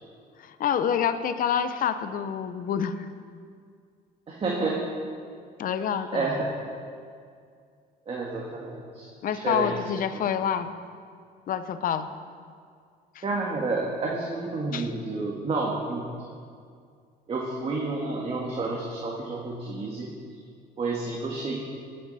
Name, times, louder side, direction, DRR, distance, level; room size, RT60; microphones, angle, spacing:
voice 1, 0.4-3.1 5.6-6.3 9.2-10.7 11.5-12.1 13.1-13.2 14.7-14.9, left 8 dB, 55° left, 11 dB, 0.8 m, -27 dB
voice 2, 4.3-4.8 6.1-6.5 8.1-9.7 13.2-16.1 17.3-20.1 20.8-21.6, right 3 dB, 35° right, -3 dB, 1.9 m, -30 dB
19.0 x 8.6 x 4.3 m, 2.2 s
cardioid pair, 110°, 17 cm